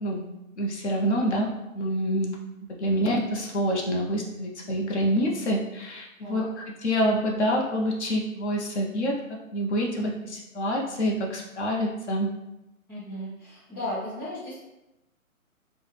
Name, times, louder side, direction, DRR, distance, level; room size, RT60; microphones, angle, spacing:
voice 1, 0.6-1.5 1.7-2.4 2.8-6.4 6.8-9.2 9.5-12.3, equal, 50° left, -1 dB, 0.7 m, -26 dB
voice 2, 12.9-14.6, left 1 dB, 5° left, -14 dB, 1.1 m, -35 dB
4.5 x 2.1 x 3.2 m, 0.95 s
hypercardioid pair, 140°, 42 cm